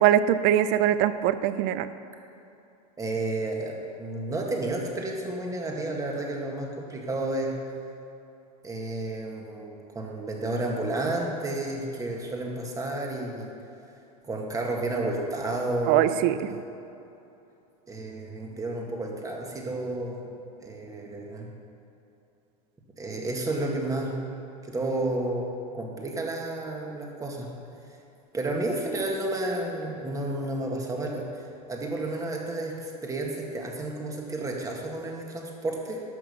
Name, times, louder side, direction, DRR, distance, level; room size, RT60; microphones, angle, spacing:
voice 1, 0.0-1.9 15.9-16.6, right 11 dB, 50° right, 13 dB, 0.6 m, -22 dB
voice 2, 3.0-7.6 8.6-13.5 14.2-16.1 16.5-16.6 17.9-20.2 20.6-21.5 23.0-24.2 24.7-25.5 25.7-27.5 28.3-36.0, right 2 dB, 15° right, 0 dB, 1.9 m, -31 dB
11.5 x 6.2 x 7.1 m, 2.8 s
supercardioid pair, 115°, 21 cm